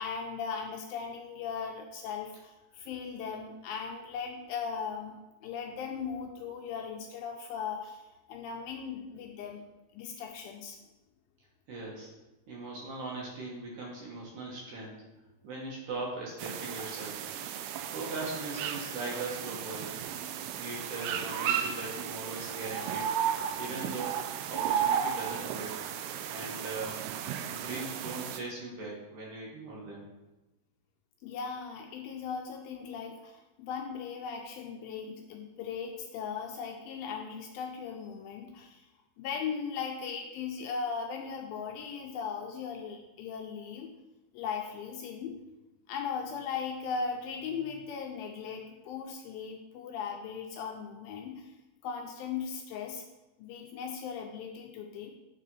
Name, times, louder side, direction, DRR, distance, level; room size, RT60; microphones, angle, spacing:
voice 1, 0.0-9.7 9.9-10.8 31.2-38.8 39.2-43.9 44.3-45.4 45.9-51.5 51.8-53.0 53.4-55.1, left 6 dB, 80° left, 2 dB, 2.2 m, -38 dB
voice 2, 11.7-12.1 12.5-15.0 15.4-17.2 17.9-20.0 20.6-23.1 23.6-24.1 24.5-25.8 26.2-27.0 27.5-30.1, right 2 dB, 65° right, -3 dB, 2.4 m, -40 dB
sound 1, 16.4-28.4, right 9 dB, 85° right, 2.6 m, -34 dB
7.5 x 4.1 x 5.3 m, 1.0 s
omnidirectional pair, 4.6 m